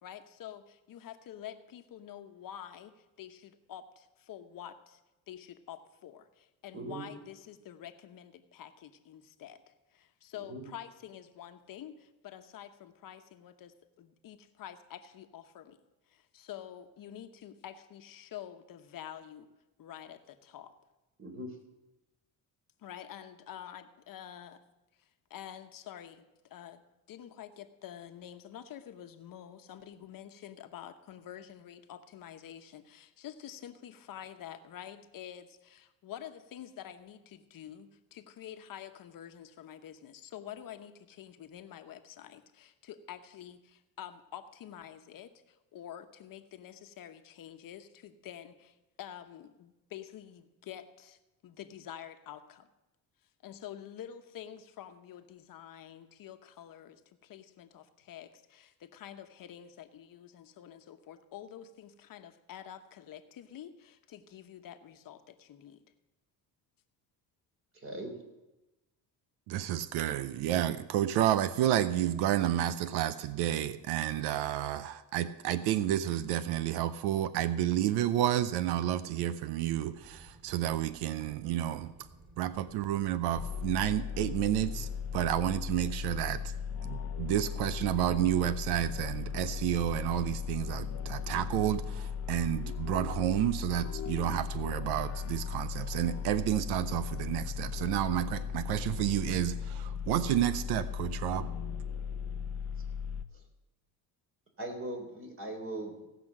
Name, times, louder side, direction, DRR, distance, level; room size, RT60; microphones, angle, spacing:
voice 1, 0.0-5.0 5.3-15.8 16.1-19.5 19.8-20.7 22.8-24.6 25.0-26.2 26.5-26.8 27.1-52.7 53.4-65.8, left 10 dB, 60° left, 8 dB, 1.1 m, -48 dB
voice 2, 6.7-7.1 10.5-10.6 21.2-21.6 67.7-68.1 103.3-103.4 104.6-106.0, right 1 dB, 35° right, 3 dB, 3.6 m, -40 dB
voice 3, 69.5-81.9 82.4-86.4 86.8-101.5, right 12 dB, 90° right, 14 dB, 0.7 m, -30 dB
sound 1, 79.9-85.2, right 1 dB, 55° right, 6.1 m, -56 dB
sound 2, 83.3-103.2, left 7 dB, 40° left, 0.7 m, -37 dB
17.0 x 6.1 x 7.4 m, 1.0 s
cardioid pair, 95°, 38 cm